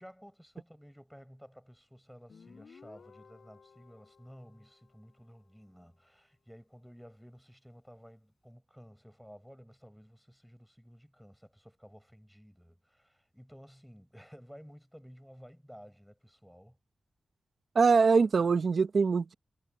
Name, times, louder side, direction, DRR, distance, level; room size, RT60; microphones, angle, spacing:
voice 1, 0.0-16.8, equal, ahead, 6.8 m, -54 dB
Guitar, 2.3-5.8, left 5 dB, 75° left, 4.1 m, -58 dB
voice 2, 17.7-19.3, right 5 dB, 65° right, 0.7 m, -23 dB
wide cardioid pair, 75°, 0 cm